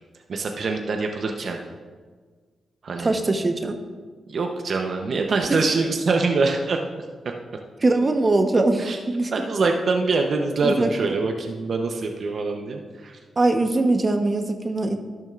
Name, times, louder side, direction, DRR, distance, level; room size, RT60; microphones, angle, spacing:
voice 1, 0.3-1.6 2.8-3.1 4.3-6.8 8.8-9.0 9.3-13.2, right 3 dB, 60° right, 3 dB, 0.8 m, -24 dB
voice 2, 3.0-3.8 5.5-5.6 7.8-9.3 10.6-10.9 13.4-15.0, right 2 dB, 35° right, 6 dB, 1.0 m, -21 dB
12.5 x 10.5 x 2.5 m, 1.5 s
supercardioid pair, 55°, 0 cm